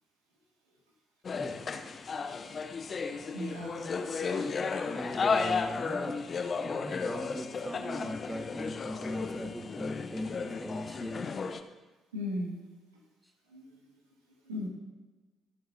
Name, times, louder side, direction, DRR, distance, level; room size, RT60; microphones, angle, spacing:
sound 1, 1.2-11.6, left 5 dB, 40° left, 0.8 m, -34 dB
voice 1, 3.3-3.9 4.3-4.4 12.1-12.6 13.5-13.8 14.4-14.7, left 1 dB, 85° right, -2 dB, 1.9 m, -37 dB
voice 2, 4.9-6.2 6.6-11.3, equal, 5° right, 4 dB, 1.4 m, -39 dB
22.0 x 7.7 x 2.7 m, 1.2 s
figure-of-eight pair, 45°, 0 cm